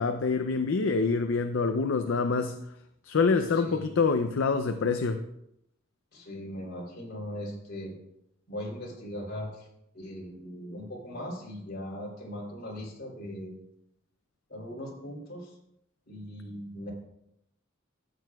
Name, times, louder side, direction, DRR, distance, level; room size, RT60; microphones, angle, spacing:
voice 1, 0.0-2.6 3.0-5.2, left 4 dB, 65° left, 7 dB, 0.5 m, -26 dB
voice 2, 3.5-3.9 6.1-7.9 8.5-9.7 9.9-13.5 14.5-15.5 16.1-16.9, equal, 50° left, -3 dB, 3.1 m, -39 dB
13.5 x 7.7 x 2.3 m, 0.79 s
head